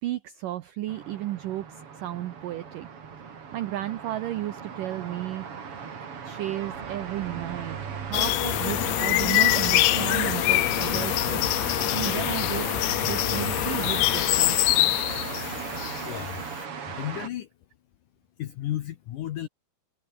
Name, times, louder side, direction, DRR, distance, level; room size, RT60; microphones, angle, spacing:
voice 1, 0.0-2.9 3.2-5.5 6.2-12.7 13.0-14.9, right 14 dB, 85° right, 1.9 m, -34 dB
sound 1, 0.9-17.3, right 6 dB, 40° right, 2.8 m, -37 dB
sound 2, 6.6-14.4, right 7 dB, 55° right, 4.7 m, -41 dB
sound 3, 8.1-16.4, left 19 dB, 90° left, 3.2 m, -24 dB
voice 2, 16.0-17.5 18.4-19.5, left 13 dB, 70° left, 2.0 m, -34 dB
omnidirectional pair, 5.1 m